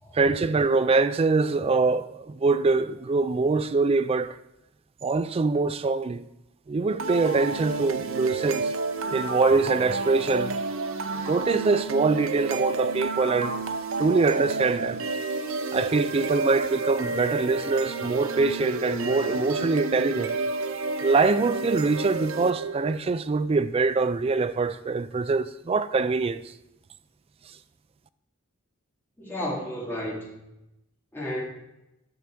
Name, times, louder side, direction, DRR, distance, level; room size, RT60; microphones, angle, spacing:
voice 1, 0.1-4.4 5.0-6.2 6.7-8.7 9.1-10.5 11.3-13.5 14.0-15.0 15.7-20.3 21.0-26.4, right 4 dB, 25° right, 0.3 m, -24 dB
sound 1, 7.0-23.0, right 3 dB, 65° right, 0.7 m, -30 dB
voice 2, 29.2-30.4 31.1-31.4, left 1 dB, 10° left, 2.3 m, -32 dB
10.5 x 6.3 x 4.4 m
head